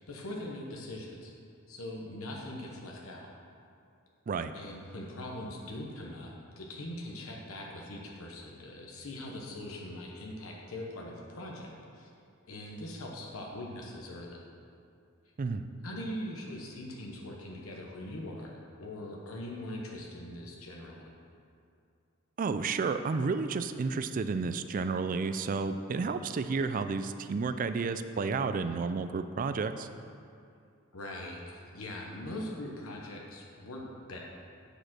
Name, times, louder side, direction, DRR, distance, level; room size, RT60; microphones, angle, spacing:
voice 1, 0.0-1.3 1.7-3.3 4.5-12.1 12.5-14.4 15.8-21.1 30.9-34.2, left 1 dB, 80° left, -1 dB, 1.0 m, -41 dB
voice 2, 22.4-29.9, right 4 dB, 40° right, 10 dB, 0.3 m, -31 dB
8.7 x 5.0 x 6.0 m, 2.4 s
head